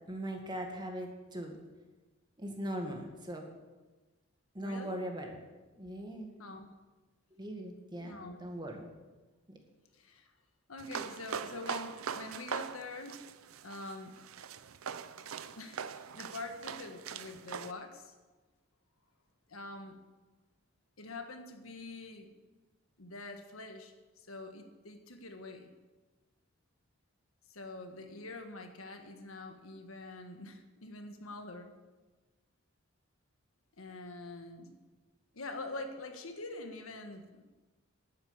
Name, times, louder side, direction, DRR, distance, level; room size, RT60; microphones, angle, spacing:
voice 1, 0.1-1.6 2.4-3.5 4.5-5.4 5.8-6.3 7.3-8.1 8.4-8.9, right 1 dB, 20° right, 3 dB, 2.0 m, -40 dB
voice 2, 4.6-5.0 6.4-6.7 8.0-8.5 9.9-10.3 10.7-13.2 13.6-14.1 15.2-15.3 15.6-18.1 19.5-20.0 21.0-22.3 23.0-25.7 27.5-31.7 33.8-34.8 35.3-37.4, left 2 dB, 85° left, 5 dB, 1.5 m, -45 dB
sound 1, 10.8-17.7, right 7 dB, 90° right, 0.6 m, -42 dB
11.5 x 9.5 x 7.2 m, 1.2 s
head